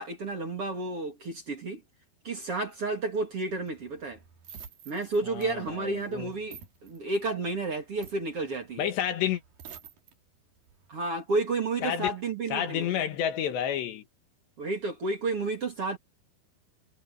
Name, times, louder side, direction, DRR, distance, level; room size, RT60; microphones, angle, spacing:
voice 1, 0.0-1.8 2.2-4.2 4.9-8.9 10.9-13.0 14.6-16.0, right 3 dB, 35° right, 2.9 m, -31 dB
sound 1, 3.5-10.1 10.6-10.9, right 8 dB, 55° right, 4.0 m, -50 dB
voice 2, 5.3-6.3 8.8-9.4 11.8-12.1 12.5-14.0, left 9 dB, 75° left, 3.8 m, -30 dB
omnidirectional pair, 5.2 m